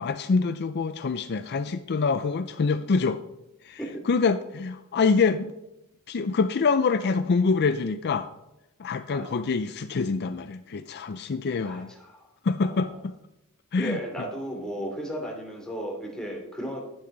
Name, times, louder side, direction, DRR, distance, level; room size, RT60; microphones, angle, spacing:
voice 1, 0.0-3.2 3.6-3.8 4.0-5.5 6.1-8.3 8.8-11.9 12.4-13.1 13.7-14.0, left 4 dB, 50° left, 10 dB, 0.5 m, -25 dB
voice 2, 11.6-12.3 12.6-12.9 13.8-16.8, equal, 5° left, -1 dB, 2.8 m, -35 dB
11.5 x 10.5 x 4.0 m, 0.89 s
head